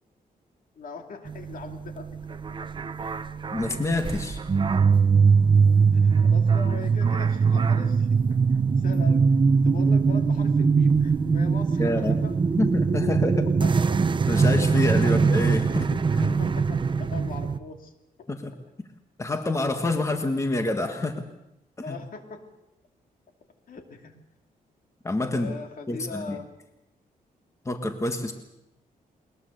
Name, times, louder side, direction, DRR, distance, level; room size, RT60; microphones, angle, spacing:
voice 1, 0.7-2.7 3.0-3.1 5.8-9.2 9.6-12.3 13.6-13.9 15.0-15.2 16.4-17.9 18.2-18.3 21.8-22.4 23.7-24.1 25.3-26.4, left 5 dB, 65° left, 5 dB, 2.7 m, -41 dB
sound 1, 1.3-17.6, right 5 dB, 30° right, 0.8 m, -22 dB
voice 2, 3.5-4.4 11.8-12.2 12.6-13.5 14.3-16.3 18.3-18.5 19.2-21.2 21.9-22.0 25.0-25.5 25.9-26.4 27.6-28.3, left 2 dB, 20° left, 6 dB, 1.6 m, -27 dB
21.0 x 21.0 x 6.7 m, 0.86 s
cardioid pair, 120°, 15 cm